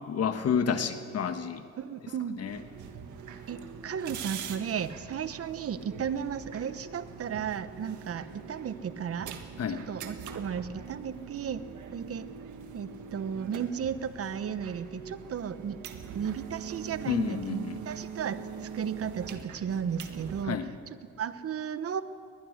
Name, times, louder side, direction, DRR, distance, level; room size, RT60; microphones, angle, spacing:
voice 1, 0.0-1.6 2.4-2.6 9.6-9.8 17.1-17.8 20.5-20.7, left 7 dB, 55° left, 8 dB, 1.5 m, -30 dB
voice 2, 1.8-2.4 3.5-9.3 9.9-11.6 11.9-12.3 12.7-15.8 16.1-20.6 21.2-22.0, right 7 dB, 50° right, 13 dB, 1.1 m, -34 dB
sound 1, 2.5-20.4, right 6 dB, 75° right, 1.8 m, -43 dB
21.0 x 20.0 x 6.6 m, 2.3 s
cardioid pair, 90°, 30 cm